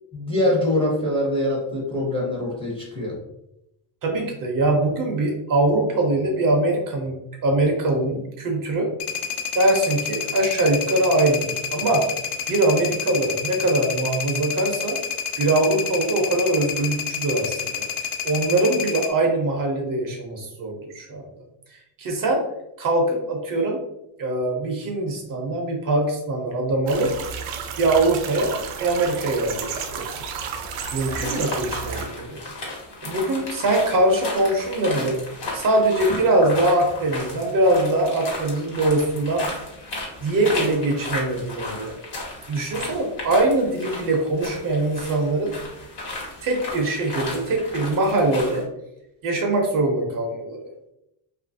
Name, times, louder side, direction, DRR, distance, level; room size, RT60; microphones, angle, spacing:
voice 1, 0.1-3.2, left 1 dB, 10° left, -4 dB, 0.5 m, -23 dB
voice 2, 4.0-7.2 7.4-8.9 9.5-12.0 12.5-15.0 15.4-17.8 18.2-21.2 22.0-22.4 22.8-23.8 24.2-27.1 27.8-28.5 28.8-30.1 30.9-32.5 33.0-35.2 35.5-39.5 40.2-41.9 42.5-45.5 46.4-48.6 49.2-50.7, right 2 dB, 45° right, 1 dB, 0.5 m, -22 dB
sound 1, 9.0-19.1, left 7 dB, 90° left, 0.6 m, -29 dB
sound 2, 26.9-32.1, right 6 dB, 85° right, 0.6 m, -32 dB
sound 3, 30.8-48.6, left 2 dB, 55° left, 1.0 m, -34 dB
2.6 x 2.4 x 2.6 m, 0.84 s
cardioid pair, 130°, 49 cm